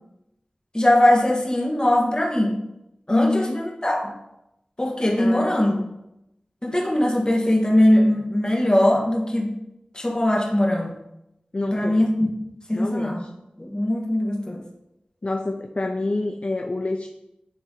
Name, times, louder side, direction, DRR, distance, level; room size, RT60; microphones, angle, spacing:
voice 1, 0.7-2.6 3.1-4.1 4.8-5.7 6.6-9.5 9.9-11.0 11.7-12.3 12.7-13.2 13.6-14.6, left 1 dB, 30° left, -1 dB, 1.6 m, -20 dB
voice 2, 3.1-3.6 5.2-5.9 11.5-12.1 12.7-13.3 15.2-17.1, left 2 dB, 45° left, 3 dB, 0.4 m, -27 dB
9.0 x 3.3 x 3.9 m, 0.87 s
wide cardioid pair, 45°, 3 cm